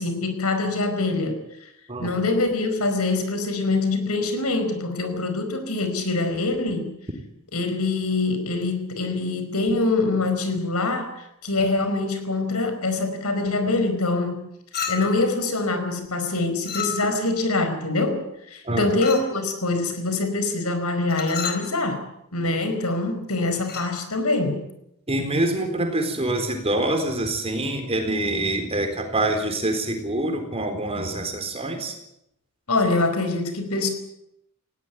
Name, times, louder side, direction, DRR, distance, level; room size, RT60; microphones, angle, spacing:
voice 1, 0.0-1.4 2.0-6.9 7.5-14.4 14.9-22.0 22.3-24.6 32.7-33.9, left 2 dB, 90° left, 8 dB, 4.8 m, -24 dB
Chink clink, 14.7-15.3 16.6-17.3 19.0-19.4 21.1-21.7 23.6-24.0, left 7 dB, 45° left, 4.4 m, -31 dB
voice 2, 25.1-32.0, right 1 dB, 30° right, 6 dB, 4.1 m, -25 dB
19.5 x 17.5 x 9.3 m, 0.80 s
head